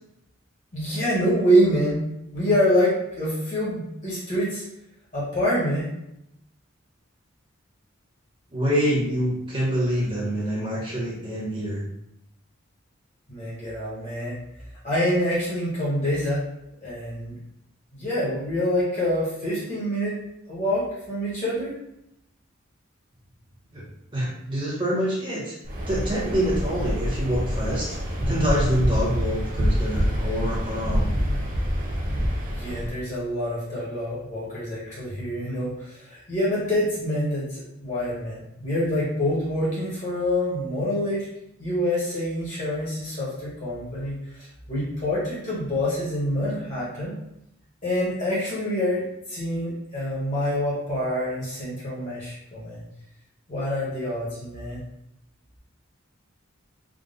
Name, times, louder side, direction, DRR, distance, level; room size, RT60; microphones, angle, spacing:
voice 1, 0.7-2.0 2.3-4.6 5.1-5.9 13.3-14.4 14.8-16.4 16.8-17.4 17.9-21.7 32.5-41.3 41.6-47.2 47.8-52.8 53.5-54.8, equal, 35° left, -7 dB, 1.4 m, -26 dB
voice 2, 8.5-11.8 23.7-23.8 24.1-25.6 25.9-28.0 28.2-31.1, equal, 25° right, -6 dB, 1.3 m, -26 dB
Waves surf, 25.6-32.9, equal, 40° right, 0.7 m, -26 dB
3.8 x 2.5 x 3.9 m, 0.80 s
head